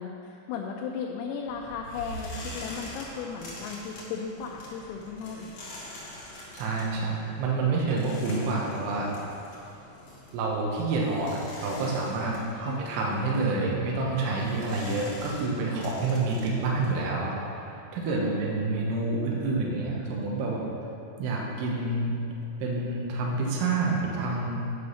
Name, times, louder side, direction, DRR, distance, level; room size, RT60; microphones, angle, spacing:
voice 1, 0.0-5.5 12.4-12.8 18.1-18.6, left 6 dB, 85° left, 0 dB, 3.3 m, -36 dB
sound 1, 1.4-17.0, left 1 dB, 60° left, 1.9 m, -44 dB
voice 2, 6.5-9.1 10.3-12.3 12.6-20.6 21.2-22.1 22.6-24.6, right 3 dB, 75° right, -3 dB, 3.5 m, -28 dB
8.5 x 7.8 x 5.6 m, 2.6 s
omnidirectional pair, 6.0 m